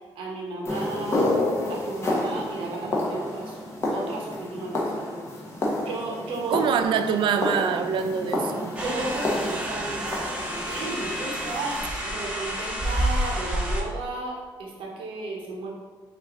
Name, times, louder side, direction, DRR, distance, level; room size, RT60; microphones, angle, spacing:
voice 1, 0.1-1.3 1.7-3.6 3.9-6.7 8.7-15.7, right 2 dB, 90° right, -1 dB, 1.0 m, -34 dB
sound 1, 0.7-11.9, left 1 dB, 30° left, 1.0 m, -30 dB
voice 2, 6.5-8.7, right 7 dB, 70° right, 8 dB, 0.4 m, -25 dB
sound 2, 8.8-13.8, right 1 dB, 15° right, 0.9 m, -29 dB
5.1 x 2.7 x 3.6 m, 1.5 s
cardioid pair, 100°, 9 cm